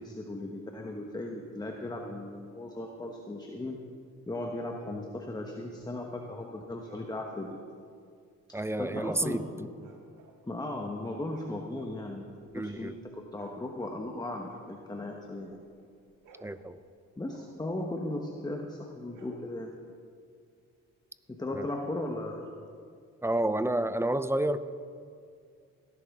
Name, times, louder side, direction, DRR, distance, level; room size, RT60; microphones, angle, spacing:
voice 1, 0.0-3.8 4.3-7.6 8.5-9.7 10.4-12.3 12.5-15.6 17.2-19.8 21.3-22.5, left 1 dB, 15° left, 2 dB, 1.0 m, -37 dB
sound 1, 6.8-7.2 9.8-10.9 11.2-14.2 14.4-15.7 16.0-18.1 19.0-19.8, right 3 dB, 90° right, 1.6 m, -59 dB
voice 2, 8.5-9.5 12.5-12.9 16.4-16.8 21.5-21.7 23.2-24.6, right 1 dB, 10° right, 13 dB, 0.5 m, -30 dB
18.0 x 11.0 x 3.6 m, 2.3 s
cardioid pair, 80°, 31 cm